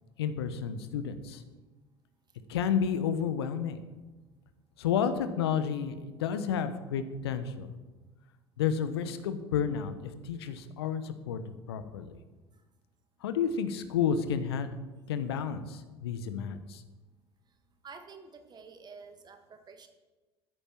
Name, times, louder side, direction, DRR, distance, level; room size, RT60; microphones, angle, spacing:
voice 1, 0.2-1.4 2.5-3.8 4.8-7.7 8.6-11.4 11.7-12.1 13.2-14.7 15.1-16.8, left 7 dB, 70° left, 11 dB, 1.0 m, -31 dB
voice 2, 17.8-19.9, right 5 dB, 30° right, 6 dB, 1.6 m, -49 dB
14.0 x 9.9 x 4.6 m, 1.2 s
figure-of-eight pair, 65°, 14 cm